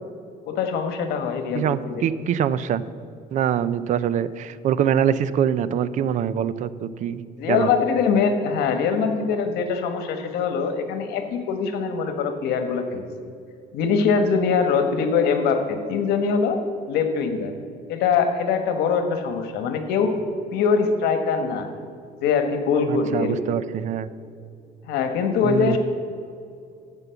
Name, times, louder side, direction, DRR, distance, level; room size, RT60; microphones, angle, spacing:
voice 1, 0.5-2.0 7.4-13.0 13.7-16.6 16.9-17.5 17.9-20.1 20.5-21.7 22.2-23.6 24.8-25.8, left 5 dB, 80° left, 6 dB, 1.3 m, -23 dB
voice 2, 1.5-2.8 3.3-7.2 7.5-7.7 22.9-24.1 25.4-25.8, right 9 dB, 50° right, 16 dB, 0.5 m, -24 dB
14.0 x 5.3 x 7.0 m, 2.4 s
cardioid pair, 145°, 16 cm